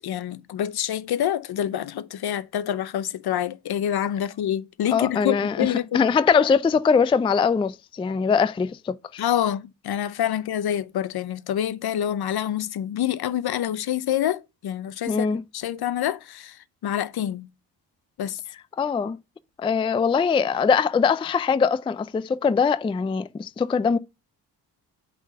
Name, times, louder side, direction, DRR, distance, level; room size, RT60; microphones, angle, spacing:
voice 1, 0.0-6.1 9.2-17.5 18.2-18.4, left 10 dB, 65° left, 0.7 m, -27 dB
voice 2, 4.9-5.7 5.9-9.2 15.1-15.4 18.8-19.2 19.6-24.0, left 5 dB, 15° left, 0.3 m, -22 dB
8.2 x 4.0 x 5.4 m
cardioid pair, 90°, 41 cm